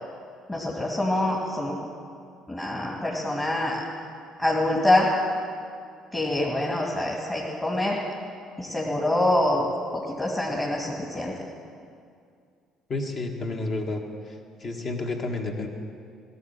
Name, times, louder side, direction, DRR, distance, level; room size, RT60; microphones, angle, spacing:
voice 1, 0.5-1.8 2.5-3.8 4.4-5.1 6.1-8.0 8.6-9.7 9.9-11.3, left 1 dB, 20° left, -3 dB, 2.5 m, -25 dB
voice 2, 12.9-14.0 14.3-15.7, left 2 dB, 40° left, 3 dB, 1.7 m, -30 dB
17.5 x 7.0 x 9.1 m, 2.3 s
figure-of-eight pair, 50°, 0 cm